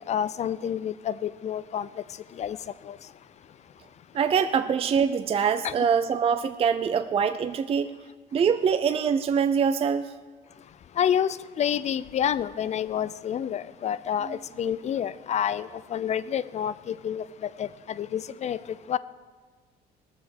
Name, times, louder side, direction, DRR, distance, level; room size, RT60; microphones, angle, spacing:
voice 1, 0.1-1.9 2.4-2.6 5.6-5.7 11.0-11.3 11.6-17.2 17.6-17.7 18.0-18.6 18.9-19.0, left 9 dB, 40° left, 0.4 m, -28 dB
voice 2, 4.1-7.9 8.3-10.1 14.2-14.4, right 7 dB, 35° right, 0.5 m, -24 dB
18.0 x 7.0 x 6.3 m
cardioid pair, 110°, 17 cm